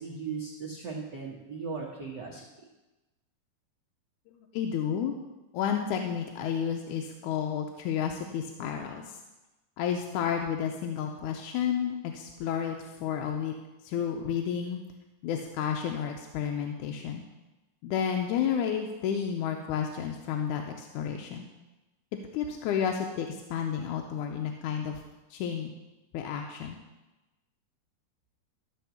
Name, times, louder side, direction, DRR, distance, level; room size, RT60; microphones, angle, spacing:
voice 1, 0.0-2.4, right 5 dB, 80° right, -2 dB, 0.9 m, -37 dB
voice 2, 4.3-5.2 5.5-9.2 9.8-13.5 13.8-14.8 15.2-17.2 17.8-21.5 22.3-25.0 25.3-25.7 26.1-26.8, left 8 dB, 75° left, 3 dB, 2.0 m, -31 dB
13.0 x 4.6 x 7.0 m, 1.1 s
omnidirectional pair, 3.9 m